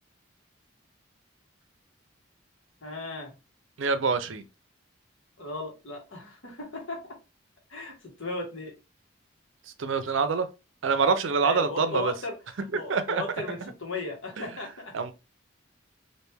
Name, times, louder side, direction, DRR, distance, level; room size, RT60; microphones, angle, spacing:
voice 1, 2.8-3.3 5.4-7.0 7.7-8.7 11.4-14.9, left 3 dB, 75° left, 1.3 m, -36 dB
voice 2, 3.8-4.4 9.8-10.5 10.8-12.1 12.7-13.2 13.6-13.7 14.9-15.1, right 5 dB, 75° right, 0.5 m, -25 dB
3.2 x 2.5 x 3.3 m
head